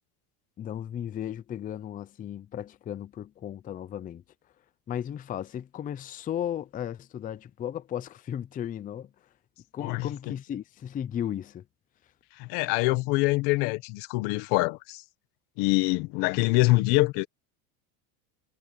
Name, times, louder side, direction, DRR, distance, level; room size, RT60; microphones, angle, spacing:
voice 1, 0.6-4.2 4.9-9.1 9.7-11.6, left 10 dB, 20° left, 0.5 m, -35 dB
voice 2, 9.8-10.3 12.4-15.0 15.6-17.3, left 22 dB, 60° left, 1.6 m, -25 dB
supercardioid pair, 135°, 45 cm